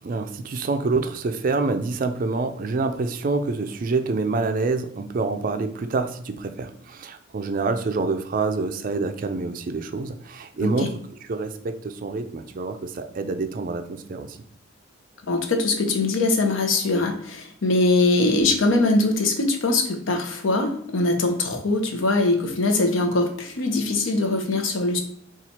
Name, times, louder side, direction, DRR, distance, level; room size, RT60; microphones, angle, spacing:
voice 1, 0.0-10.9 11.2-14.4, right 3 dB, 40° right, 8 dB, 0.3 m, -27 dB
voice 2, 15.3-25.0, left 2 dB, 70° left, 5 dB, 0.7 m, -22 dB
4.3 x 2.4 x 4.1 m, 0.63 s
head